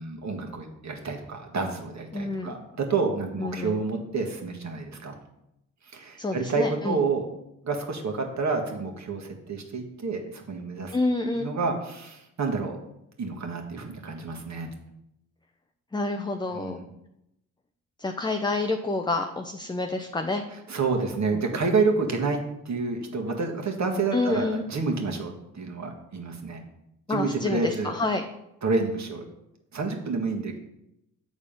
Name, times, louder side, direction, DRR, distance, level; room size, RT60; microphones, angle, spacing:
voice 1, 0.0-5.1 5.8-7.3 7.6-11.0 11.3-12.8 13.2-14.7 16.5-16.8 20.7-22.4 22.6-26.6 27.1-28.0 28.6-29.2 29.7-30.6, right 4 dB, 45° right, 3 dB, 1.5 m, -29 dB
voice 2, 2.1-2.6 3.4-3.8 6.2-7.0 10.9-11.5 15.9-16.8 18.0-20.5 24.1-24.6 27.1-28.2, left 2 dB, 10° left, 4 dB, 0.6 m, -28 dB
7.2 x 4.0 x 5.1 m, 0.85 s
supercardioid pair, 50°, 38 cm